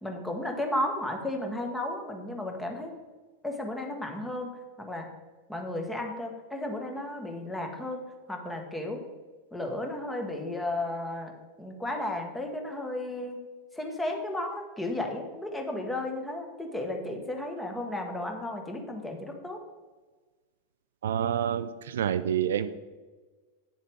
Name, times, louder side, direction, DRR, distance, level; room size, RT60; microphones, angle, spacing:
voice 1, 0.0-2.9 3.4-4.5 4.8-5.1 5.5-8.0 8.3-9.0 9.5-11.3 11.6-13.4 13.8-19.6, left 1 dB, 5° left, 3 dB, 1.4 m, -33 dB
voice 2, 21.0-22.7, right 9 dB, 60° right, 12 dB, 0.4 m, -28 dB
9.2 x 7.2 x 3.5 m, 1.3 s
figure-of-eight pair, 90°, 0 cm